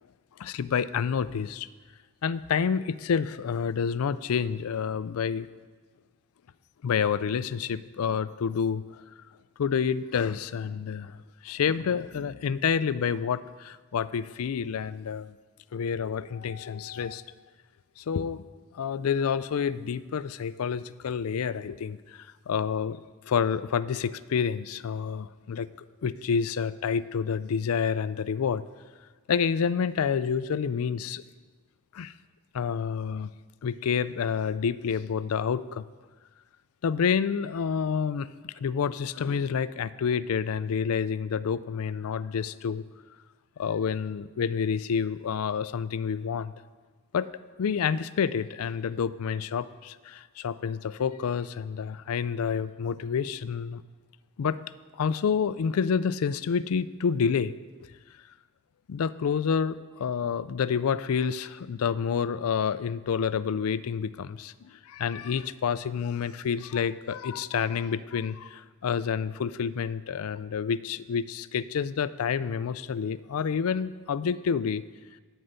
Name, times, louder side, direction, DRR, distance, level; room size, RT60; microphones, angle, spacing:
voice 1, 0.4-1.7 2.2-5.5 6.8-9.0 9.6-11.2 11.4-15.3 15.7-17.2 18.0-18.4 18.7-25.7 26.0-28.6 29.3-31.2 31.9-32.1 32.5-33.3 33.6-35.8 36.8-42.8 43.6-46.5 47.1-47.3 47.6-53.8 54.4-54.6 54.9-57.5 58.9-74.8, left 6 dB, 85° left, 16 dB, 0.4 m, -28 dB
11.0 x 5.5 x 8.0 m, 1.4 s
head